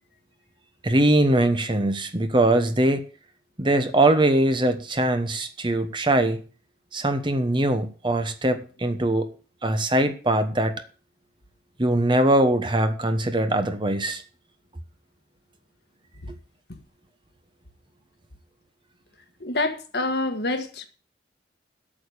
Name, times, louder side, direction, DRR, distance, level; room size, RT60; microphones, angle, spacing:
voice 1, 0.8-3.0 3.6-6.4 6.9-9.3 9.6-10.7 11.8-14.2, right 1 dB, 25° right, 1.1 m, -22 dB
voice 2, 19.4-20.8, left 2 dB, 65° left, 1.5 m, -26 dB
8.7 x 6.9 x 8.5 m
head